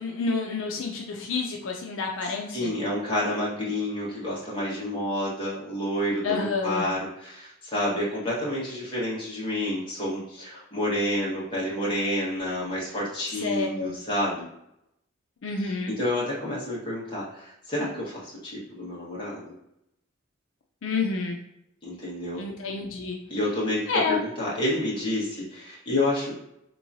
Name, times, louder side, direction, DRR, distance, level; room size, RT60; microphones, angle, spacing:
voice 1, 0.0-2.7 6.2-6.9 13.4-13.9 15.4-15.9 20.8-21.4 22.3-23.2 23.9-24.2, left 4 dB, 75° left, 1 dB, 0.5 m, -29 dB
voice 2, 2.5-14.4 15.6-19.5 21.8-22.4 23.3-26.3, left 1 dB, 25° left, -7 dB, 1.4 m, -29 dB
3.7 x 3.0 x 2.7 m, 0.81 s
head